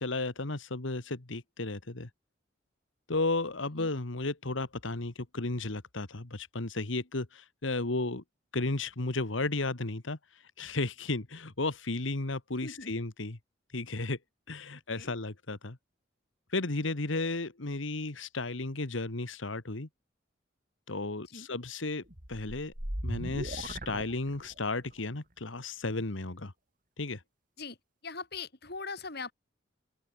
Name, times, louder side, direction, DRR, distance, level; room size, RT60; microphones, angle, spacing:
voice 1, 0.0-2.1 3.1-8.2 8.5-13.4 13.7-14.2 14.5-15.8 16.5-19.9 20.9-22.0 22.3-22.7 23.0-26.5 27.0-27.2, left 2 dB, 75° left, 1.7 m, -34 dB
voice 2, 12.6-12.9 14.9-15.1 21.2-21.5 27.6-27.8 28.0-29.3, left 4 dB, 55° left, 3.4 m, -41 dB
sound 1, 22.1-24.8, right 1 dB, 45° right, 4.6 m, -38 dB
open air
head